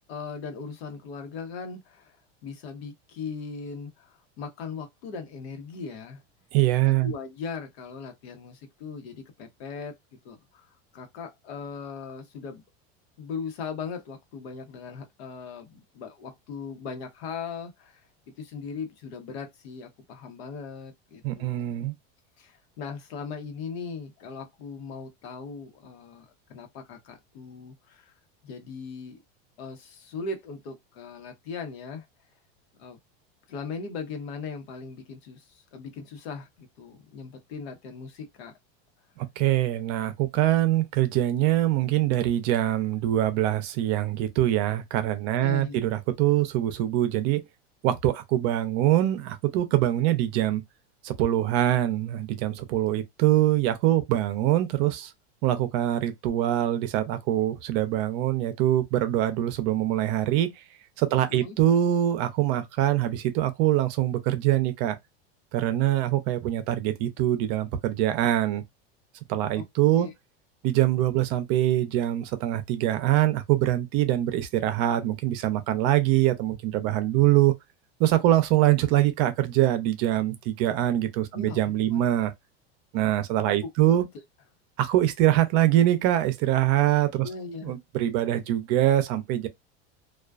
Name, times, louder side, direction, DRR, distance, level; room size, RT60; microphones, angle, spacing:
voice 1, 0.1-2.2 2.4-6.2 6.8-10.0 10.2-10.7 10.9-12.6 13.2-18.0 18.4-21.6 22.4-28.1 28.4-29.2 29.6-32.1 32.8-33.0 33.5-38.5 45.4-45.8 61.1-61.5 69.5-69.6 70.0-70.1 81.3-81.6 81.9-82.0 83.8-84.0 87.2-87.7, left 5 dB, 75° left, 1.0 m, -39 dB
voice 2, 6.5-7.1 21.2-21.9 39.2-47.4 47.8-50.6 51.0-55.1 55.4-60.5 61.0-65.0 65.5-68.6 69.3-70.1 70.6-77.5 78.0-82.3 82.9-84.0 84.8-87.3 87.6-89.5, right 13 dB, 50° right, 0.6 m, -24 dB
2.3 x 2.3 x 2.3 m
supercardioid pair, 140°, 32 cm